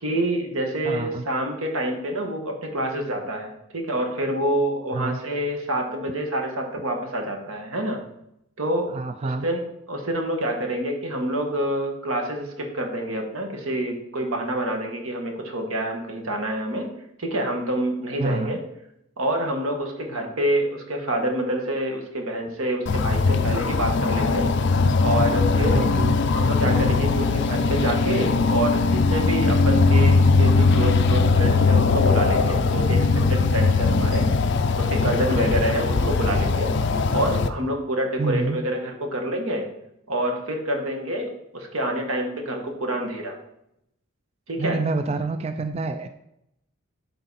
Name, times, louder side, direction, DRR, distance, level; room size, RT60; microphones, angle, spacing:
voice 1, 0.0-8.0 8.6-8.9 9.2-16.9 17.2-18.6 19.2-24.5 25.0-25.8 26.3-34.3 34.7-36.7 37.1-39.7 40.1-43.4 44.5-44.8, right 1 dB, 80° right, 2 dB, 1.5 m, -27 dB
voice 2, 0.8-1.2 4.9-5.2 8.9-9.5 18.2-18.6 25.5-26.1 38.2-38.6 44.6-46.1, right 3 dB, 30° right, 8 dB, 0.3 m, -27 dB
sound 1, 22.9-37.5, left 4 dB, 55° left, 0.5 m, -20 dB
11.5 x 3.9 x 4.1 m, 0.80 s
head